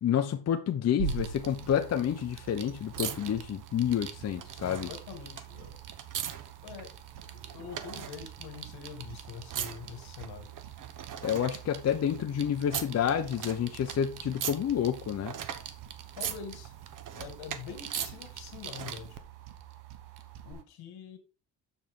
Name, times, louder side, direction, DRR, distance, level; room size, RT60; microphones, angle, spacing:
voice 1, 0.0-4.9 11.2-15.3, left 9 dB, 40° left, 0.8 m, -29 dB
sound 1, 1.0-19.2 20.5-20.6, right 9 dB, 50° right, 1.1 m, -42 dB
sound 2, 1.0-20.6, right 8 dB, 80° right, 1.3 m, -44 dB
voice 2, 4.6-5.8 6.6-6.9 7.3-10.5 16.2-16.7 17.1-19.2 20.4-21.2, left 7 dB, 75° left, 2.2 m, -45 dB
7.1 x 7.1 x 3.7 m
cardioid pair, 135°, 39 cm